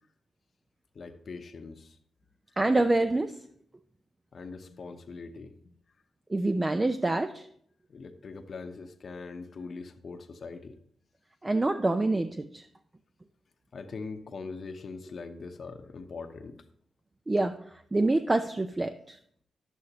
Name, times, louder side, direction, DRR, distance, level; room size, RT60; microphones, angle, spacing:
voice 1, 0.9-2.0 4.3-5.5 7.9-10.8 13.7-16.6, left 4 dB, 55° left, 7 dB, 0.8 m, -42 dB
voice 2, 2.6-3.4 6.3-7.5 11.4-12.6 17.3-17.6 17.9-19.2, right 2 dB, 25° right, 8 dB, 0.5 m, -26 dB
10.5 x 8.1 x 2.9 m, 0.64 s
cardioid pair, 65°, 0 cm